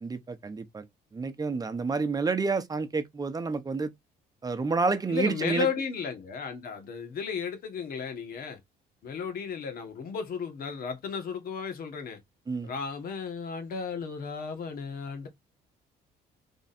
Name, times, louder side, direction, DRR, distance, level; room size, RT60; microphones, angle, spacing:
voice 1, 0.0-0.9 1.1-3.9 4.4-5.7 12.5-12.7, right 4 dB, 20° right, 0.9 m, -29 dB
voice 2, 5.1-8.6 9.0-12.2 12.6-15.3, left 6 dB, 60° left, 1.6 m, -34 dB
3.6 x 3.2 x 4.2 m
cardioid pair, 110°, 17 cm